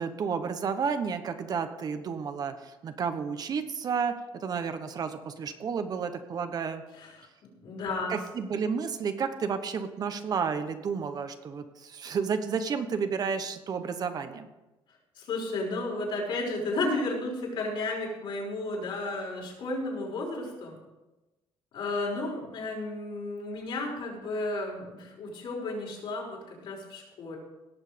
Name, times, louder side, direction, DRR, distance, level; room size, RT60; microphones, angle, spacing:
voice 1, 0.0-4.1 4.4-6.8 8.1-14.5, right 6 dB, 45° right, 8 dB, 1.1 m, -31 dB
voice 2, 6.9-7.3 7.6-8.2 15.2-20.8 21.7-27.4, left 2 dB, 65° left, -2 dB, 5.5 m, -33 dB
18.0 x 7.2 x 5.2 m, 1.1 s
cardioid pair, 130°, 10 cm